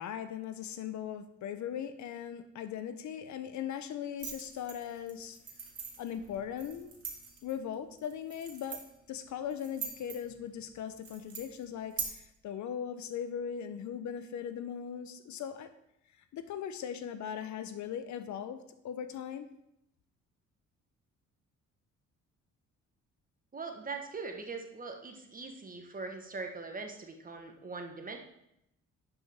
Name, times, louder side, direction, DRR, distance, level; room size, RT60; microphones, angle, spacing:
voice 1, 0.0-5.4 6.0-6.9 7.4-8.8 9.1-15.7 16.3-19.5, left 8 dB, 70° left, 10 dB, 0.8 m, -39 dB
sound 1, 4.2-12.0, right 6 dB, 50° right, 2.2 m, -44 dB
voice 2, 23.5-28.2, right 4 dB, 30° right, 4 dB, 1.3 m, -41 dB
10.5 x 5.3 x 3.5 m, 0.80 s
cardioid pair, 90°, 30 cm